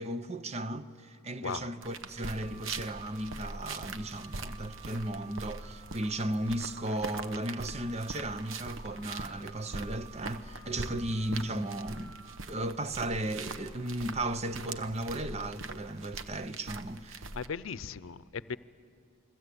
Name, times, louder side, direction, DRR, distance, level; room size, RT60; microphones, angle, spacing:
voice 1, 0.0-12.2 12.5-17.2, right 1 dB, 35° right, 0.8 m, -35 dB
voice 2, 1.4-1.7 17.3-18.6, left 6 dB, 80° left, 0.6 m, -37 dB
sound 1, 1.8-17.5, right 3 dB, 75° right, 1.1 m, -43 dB
sound 2, 2.4-12.4, right 4 dB, 55° right, 6.2 m, -54 dB
28.5 x 22.0 x 8.4 m
head